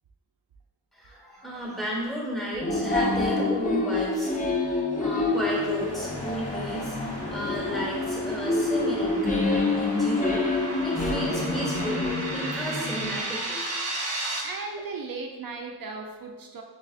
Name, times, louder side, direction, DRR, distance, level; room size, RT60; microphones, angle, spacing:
voice 1, 0.9-13.6, equal, ahead, -5 dB, 1.1 m, -34 dB
sound 1, 2.6-13.2, left 2 dB, 20° left, 0.4 m, -27 dB
sound 2, 5.3-12.1, left 1 dB, 65° left, 0.8 m, -40 dB
sound 3, 6.7-14.4, right 2 dB, 35° right, 0.9 m, -35 dB
voice 2, 14.4-16.6, right 4 dB, 55° right, 3 dB, 0.4 m, -37 dB
6.0 x 2.3 x 2.4 m, 1.3 s
wide cardioid pair, 70°, 43 cm